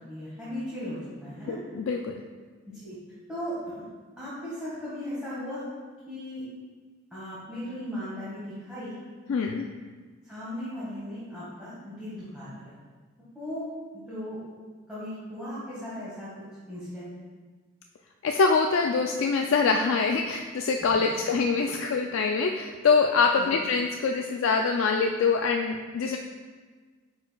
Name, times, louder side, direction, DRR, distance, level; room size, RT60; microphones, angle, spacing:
voice 1, 0.1-1.6 2.6-3.0 3.3-3.8 4.2-5.6 6.1-6.4 7.1-9.0 10.2-12.7 13.3-14.4 14.9-17.1 20.9-21.3 23.4-23.5, equal, 5° right, -12 dB, 1.6 m, -37 dB
voice 2, 1.5-2.2 9.3-9.7 18.2-26.2, left 4 dB, 70° left, 3 dB, 0.3 m, -24 dB
9.4 x 4.4 x 2.3 m, 1.5 s
head